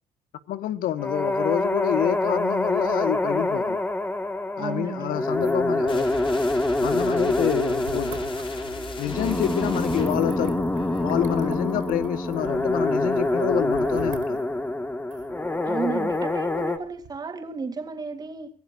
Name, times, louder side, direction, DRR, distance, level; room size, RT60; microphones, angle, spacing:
voice 1, 0.5-3.8 4.6-6.1 6.8-8.2 9.0-10.6 11.0-14.5, left 11 dB, 80° left, 1.5 m, -27 dB
sound 1, 1.0-16.8, left 2 dB, 10° left, 1.8 m, -26 dB
voice 2, 4.6-5.2 9.4-9.6 15.7-18.5, right 5 dB, 25° right, 3.5 m, -33 dB
sound 2, 5.2-17.1, right 7 dB, 65° right, 5.1 m, -45 dB
sound 3, 5.9-11.5, left 3 dB, 35° left, 4.2 m, -40 dB
25.0 x 15.5 x 2.6 m
cardioid pair, 135°, 14 cm